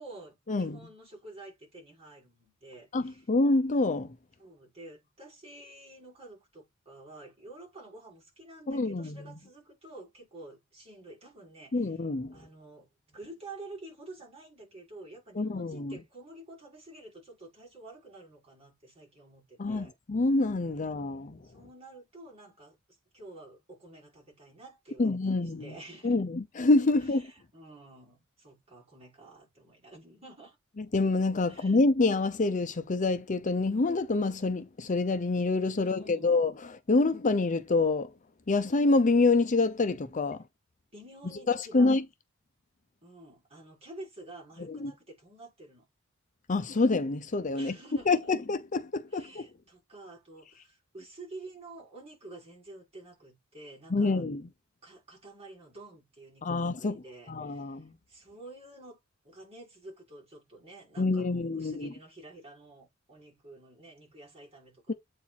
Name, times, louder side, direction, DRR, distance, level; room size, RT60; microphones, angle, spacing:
voice 1, 0.0-3.2 4.4-11.9 12.3-20.0 21.4-22.8 23.1-26.3 27.0-30.6 31.4-31.8 35.8-36.4 40.9-42.0 43.0-45.9 47.5-48.3 49.1-54.2 54.8-59.0 59.2-65.0, right 2 dB, 30° right, 5.9 m, -49 dB
voice 2, 2.9-4.2 8.7-9.2 11.7-12.3 15.4-16.0 19.6-21.4 25.0-25.7 26.0-27.3 30.9-38.1 38.5-40.4 41.5-42.0 44.7-44.9 46.5-47.7 48.1-49.5 53.9-54.5 56.4-57.9 61.0-61.9, left 3 dB, 40° left, 0.6 m, -27 dB
8.2 x 4.5 x 4.2 m
head